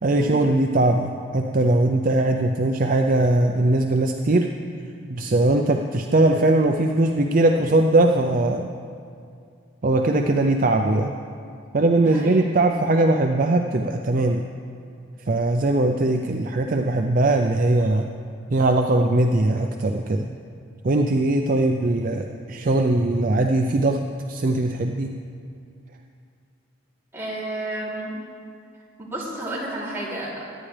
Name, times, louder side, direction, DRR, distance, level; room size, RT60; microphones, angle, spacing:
voice 1, 0.0-4.5 5.1-8.7 9.8-11.1 11.7-14.4 15.3-18.1 18.5-20.3 20.8-24.0 24.3-25.1, right 2 dB, 40° right, 3 dB, 0.4 m, -20 dB
voice 2, 12.0-12.4 27.1-28.1 29.0-30.4, right 1 dB, 10° right, -9 dB, 3.0 m, -31 dB
22.5 x 10.0 x 3.3 m, 2.4 s
head